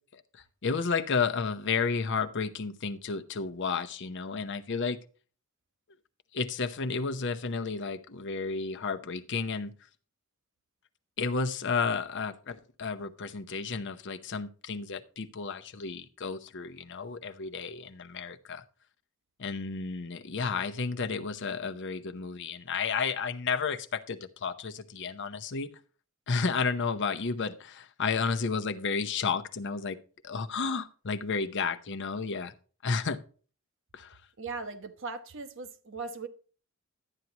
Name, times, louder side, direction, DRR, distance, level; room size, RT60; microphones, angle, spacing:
voice 1, 0.6-5.0 6.3-9.7 11.2-18.6 19.4-25.7 26.3-30.0 30.2-32.5 32.8-33.2 33.9-34.2, left 5 dB, 60° left, 0.8 m, -32 dB
voice 2, 34.4-36.3, right 4 dB, 65° right, 1.1 m, -39 dB
12.0 x 9.4 x 2.9 m
head